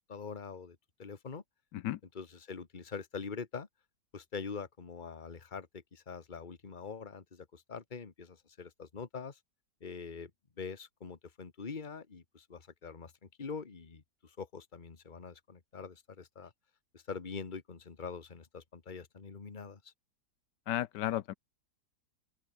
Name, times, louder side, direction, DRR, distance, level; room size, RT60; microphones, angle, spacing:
voice 1, 0.1-1.4 2.1-3.7 4.1-9.4 9.8-10.3 10.6-16.5 16.9-19.9, left 5 dB, 30° left, 1.7 m, -44 dB
voice 2, 20.7-21.3, left 13 dB, 80° left, 1.3 m, -33 dB
open air
omnidirectional pair, 1.9 m